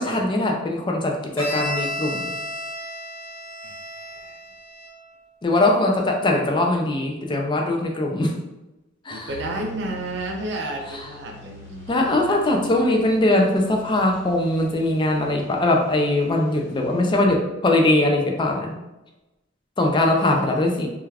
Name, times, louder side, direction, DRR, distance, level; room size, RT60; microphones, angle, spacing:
voice 1, 0.0-2.3 5.4-8.3 9.1-9.3 11.9-18.7 19.8-20.9, left 1 dB, 25° left, 1 dB, 0.4 m, -21 dB
Bowed string instrument, 1.4-5.1, left 1 dB, 15° right, 1.1 m, -32 dB
voice 2, 3.6-4.4 9.1-12.2 19.8-20.6, right 1 dB, 65° right, 2 dB, 0.5 m, -32 dB
sound 1, 9.3-17.2, left 2 dB, 70° left, 0.9 m, -45 dB
2.3 x 2.2 x 3.2 m, 1.0 s
head